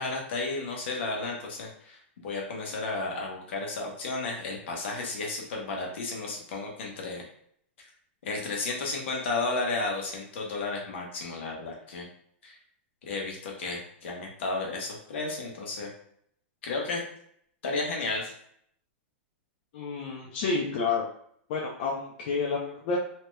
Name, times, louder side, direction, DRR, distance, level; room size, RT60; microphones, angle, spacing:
voice 1, 0.0-7.2 8.2-12.0 12.4-12.6 13.0-15.9 16.6-17.0 17.6-18.3, left 3 dB, 75° left, -1 dB, 1.0 m, -33 dB
voice 2, 19.7-21.0 21.5-23.0, left 4 dB, 60° left, -2 dB, 0.6 m, -29 dB
3.2 x 2.8 x 2.2 m, 0.66 s
hypercardioid pair, 130°, 6 cm